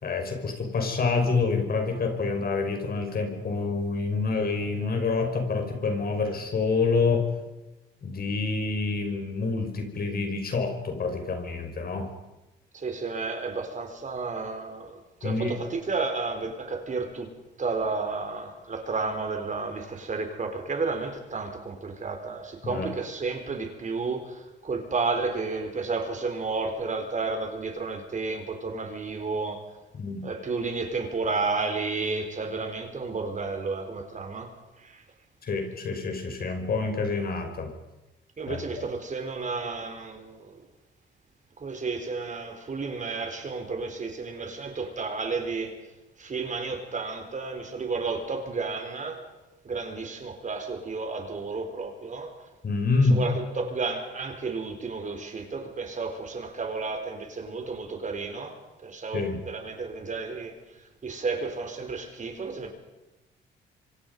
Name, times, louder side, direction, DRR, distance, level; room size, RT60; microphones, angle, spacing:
voice 1, 0.0-7.3 8.0-12.1 15.2-15.6 22.6-22.9 29.9-30.2 35.4-37.7 38.5-38.6 52.6-53.2 59.1-59.4, left 4 dB, 50° left, 5.5 m, -27 dB
voice 2, 12.7-17.3 17.6-29.6 30.2-34.5 34.8-35.0 38.4-40.6 41.6-45.8 46.2-49.2 49.6-52.3 53.1-60.6 61.0-62.7, right 4 dB, 40° right, 4.2 m, -32 dB
26.0 x 25.5 x 5.4 m
cardioid pair, 90°, 20 cm